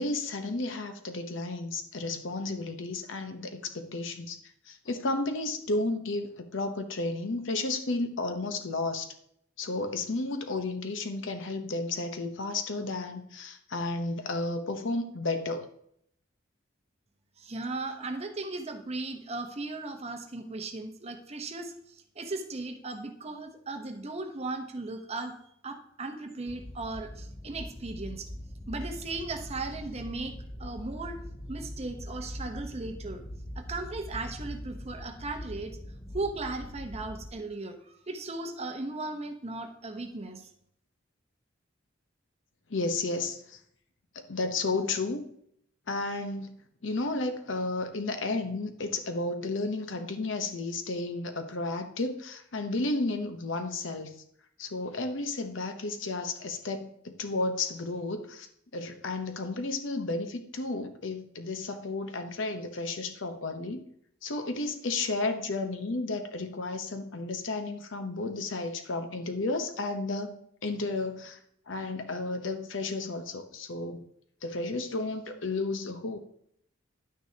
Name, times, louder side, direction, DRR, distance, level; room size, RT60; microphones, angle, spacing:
voice 1, 0.0-4.4 4.7-9.1 9.6-15.7 42.7-43.6 44.1-45.2 45.9-54.1 54.6-58.5 58.7-63.8 64.2-71.4 71.7-74.0 74.4-76.2, left 2 dB, 75° left, 7 dB, 0.9 m, -32 dB
voice 2, 17.4-21.7 22.2-25.4 25.6-28.3 28.7-31.2 31.5-33.2 33.6-35.8 36.1-40.5, right 3 dB, 35° right, 5 dB, 0.9 m, -37 dB
sound 1, 26.5-37.3, equal, 15° left, 0.6 m, -42 dB
10.5 x 9.3 x 2.8 m, 0.70 s
head